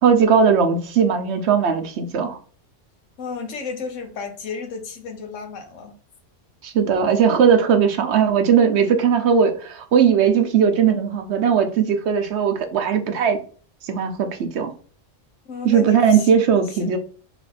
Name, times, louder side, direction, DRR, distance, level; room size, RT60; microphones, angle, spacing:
voice 1, 0.0-2.4 6.6-13.4 13.8-14.7 15.6-17.0, right 7 dB, 65° right, 1.0 m, -18 dB
voice 2, 3.2-5.9 15.4-16.3, left 5 dB, 90° left, 1.3 m, -33 dB
4.3 x 2.7 x 4.1 m
omnidirectional pair, 1.3 m